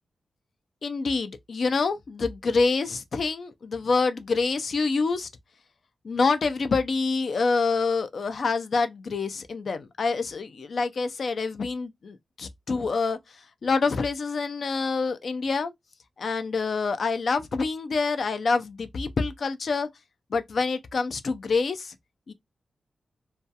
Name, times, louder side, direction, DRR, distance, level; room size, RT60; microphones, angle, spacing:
voice 1, 0.8-5.3 6.0-13.2 13.6-15.7 16.2-19.9 20.3-21.9 22.3-22.4, left 4 dB, 60° left, 0.4 m, -26 dB
2.3 x 2.2 x 2.6 m
wide cardioid pair, 125°, 0 cm